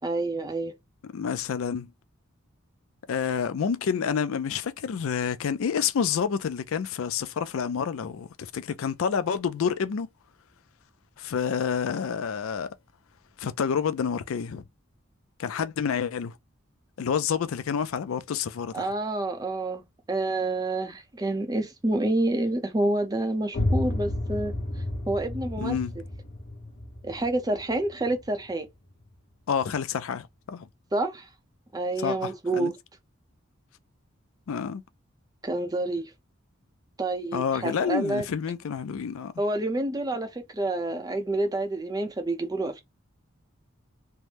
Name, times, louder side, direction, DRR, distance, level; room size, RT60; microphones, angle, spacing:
voice 1, 0.0-0.7 18.7-19.8 20.1-24.5 25.1-25.8 27.0-28.7 30.9-31.3 31.7-32.7 35.4-36.1 37.0-38.2 39.4-42.8, right 2 dB, 20° right, 0.5 m, -28 dB
voice 2, 1.0-1.9 3.1-10.1 11.2-12.8 13.4-14.6 15.4-16.3 17.0-18.9 25.6-25.9 29.5-30.7 32.0-32.7 34.5-34.8 37.3-39.3, left 7 dB, 75° left, 0.4 m, -28 dB
sound 1, 23.5-29.1, left 1 dB, 50° left, 0.7 m, -32 dB
3.3 x 2.0 x 2.8 m
head